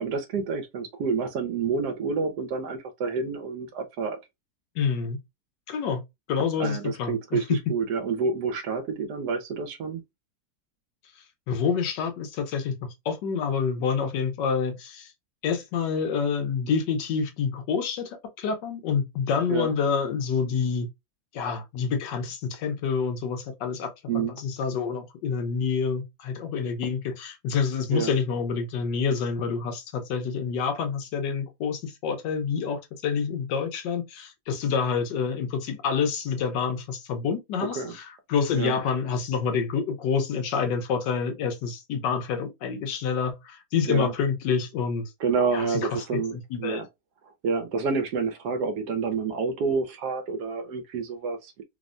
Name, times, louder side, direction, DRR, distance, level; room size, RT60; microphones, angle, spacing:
voice 1, 0.0-4.2 6.6-10.0 19.5-19.7 24.1-24.3 27.9-28.1 37.6-37.9 38.5-38.8 43.9-44.1 45.2-46.9 47.4-51.6, right 5 dB, 75° right, 1.1 m, -28 dB
voice 2, 4.8-5.2 5.7-6.0 6.3-7.4 11.5-12.8 13.0-15.1 15.4-18.1 18.4-20.9 21.3-45.1 45.5-46.8, left 6 dB, 90° left, 1.4 m, -27 dB
3.4 x 2.1 x 2.4 m
omnidirectional pair, 1.9 m